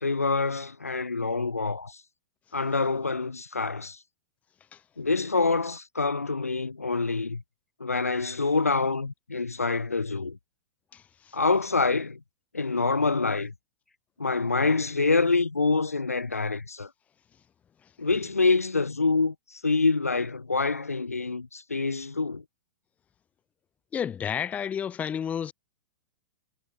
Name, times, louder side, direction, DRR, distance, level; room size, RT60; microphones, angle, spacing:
voice 1, 0.0-2.0 2.5-4.0 5.0-7.4 7.8-10.4 11.3-12.2 12.5-13.5 14.2-16.9 18.0-22.4, left 3 dB, 85° left, 1.8 m, -26 dB
voice 2, 10.9-11.4 23.9-25.5, left 8 dB, 20° left, 0.9 m, -31 dB
figure-of-eight pair, 105°, 8 cm